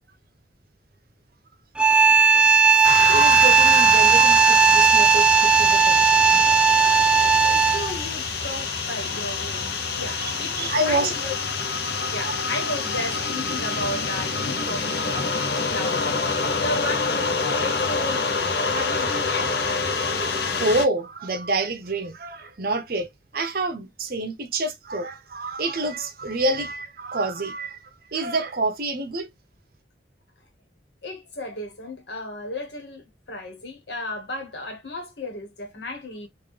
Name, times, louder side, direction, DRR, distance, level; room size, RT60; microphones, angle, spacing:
sound 1, 1.8-8.0, right 6 dB, 5° right, 0.3 m, -16 dB
sound 2, 2.8-20.9, left 4 dB, 65° left, 0.7 m, -27 dB
voice 1, 3.1-7.1 10.2-10.3 10.6-11.1 12.2-12.4 19.4-19.6 19.9-27.8 28.1-29.3, right 2 dB, 55° right, 0.8 m, -28 dB
voice 2, 7.1-10.6 10.9-11.3 12.1-15.3 15.7-16.2 16.6-19.6 31.0-36.3, left 1 dB, 80° left, 1.4 m, -34 dB
3.7 x 2.6 x 3.2 m
head